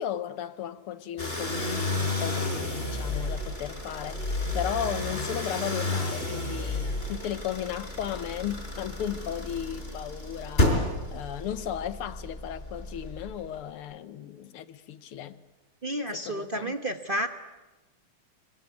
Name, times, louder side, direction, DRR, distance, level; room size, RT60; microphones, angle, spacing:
voice 1, 0.0-10.8 11.1-15.4 16.1-16.7, left 10 dB, 85° left, 2.0 m, -35 dB
sound 1, 1.2-13.6, left 2 dB, 25° left, 4.7 m, -31 dB
voice 2, 15.8-17.3, right 1 dB, 30° right, 1.0 m, -31 dB
26.0 x 23.5 x 9.6 m
omnidirectional pair, 2.4 m